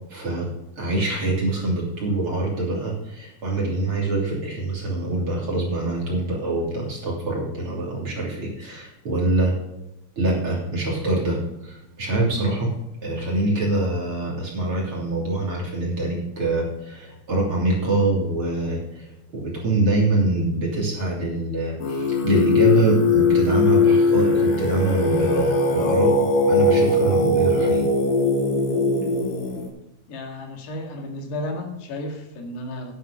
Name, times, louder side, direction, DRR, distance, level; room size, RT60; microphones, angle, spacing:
voice 1, 0.1-0.5 0.8-9.5 10.2-12.7 13.0-26.2 26.5-27.8, right 2 dB, 35° right, -3 dB, 3.5 m, -24 dB
Singing, 21.8-29.7, left 3 dB, 60° left, 3.4 m, -20 dB
voice 2, 30.1-32.9, left 1 dB, 85° left, 3 dB, 4.0 m, -33 dB
11.0 x 9.5 x 5.1 m, 0.91 s
omnidirectional pair, 4.6 m